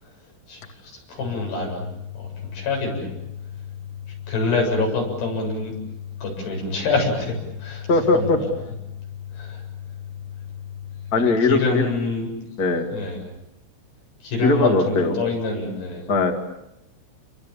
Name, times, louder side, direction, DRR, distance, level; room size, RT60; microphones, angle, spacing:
voice 1, 1.1-1.8 2.2-3.1 4.3-5.8 6.2-7.9 8.1-8.5 9.3-9.6 11.4-12.3 12.9-13.2 14.2-16.0, left 3 dB, 55° left, 1 dB, 9.5 m, -26 dB
sound 1, 1.2-11.2, left 9 dB, 80° left, 4.5 m, -37 dB
voice 2, 7.9-8.4 11.1-11.9 12.6-12.9 14.4-15.1 16.1-16.3, left 3 dB, 35° left, 4 dB, 1.5 m, -19 dB
29.5 x 25.5 x 7.3 m, 0.85 s
omnidirectional pair, 5.6 m